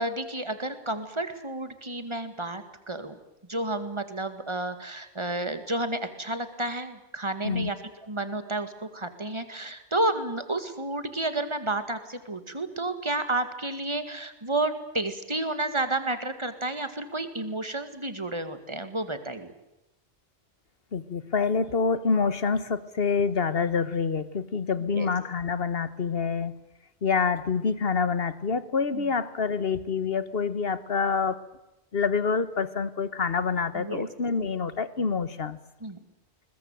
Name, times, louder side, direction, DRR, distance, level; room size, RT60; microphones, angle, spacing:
voice 1, 0.0-3.2 3.5-7.8 8.0-19.5 24.9-25.1 28.9-29.1 33.7-34.1 35.8-36.0, right 2 dB, 25° right, 10 dB, 2.2 m, -31 dB
voice 2, 20.9-26.5 27.0-31.4 31.9-35.6, left 5 dB, 60° left, 15 dB, 1.5 m, -27 dB
21.5 x 21.0 x 9.2 m, 0.92 s
omnidirectional pair, 1.1 m